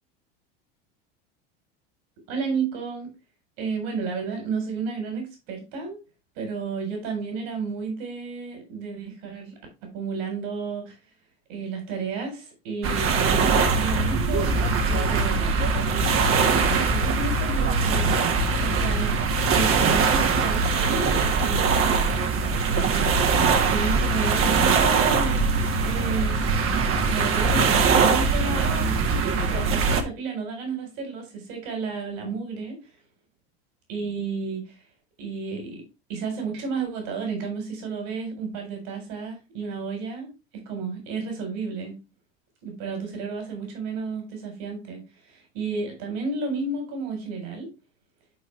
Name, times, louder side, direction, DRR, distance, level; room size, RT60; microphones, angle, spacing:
voice 1, 2.3-3.1 3.6-6.0 6.4-9.5 9.8-11.0 11.5-15.4 16.4-18.3 18.6-22.1 22.6-23.2 23.7-25.4 25.8-26.4 27.0-29.0 29.3-32.8 33.9-34.8 35.2-35.8 36.1-40.3 40.5-42.0 42.6-47.7, right 4 dB, 65° right, 3 dB, 4.2 m, -32 dB
sound 1, 12.8-30.0, right 4 dB, 45° right, 1.7 m, -22 dB
10.5 x 4.6 x 3.3 m, 0.28 s
hypercardioid pair, 90°, 30 cm